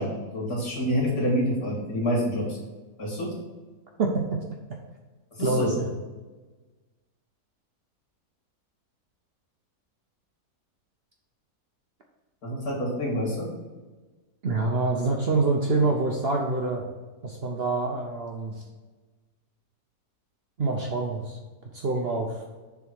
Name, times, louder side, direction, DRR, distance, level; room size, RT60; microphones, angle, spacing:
voice 1, 0.0-2.5 3.0-3.3 5.4-5.7 12.4-13.5, equal, 75° left, -4 dB, 2.8 m, -27 dB
voice 2, 4.0-4.4 5.4-5.9 14.4-16.8 17.2-18.5 20.6-21.4 21.7-22.4, right 3 dB, 50° right, 1 dB, 0.8 m, -26 dB
7.0 x 3.7 x 6.2 m, 1.3 s
omnidirectional pair, 1.7 m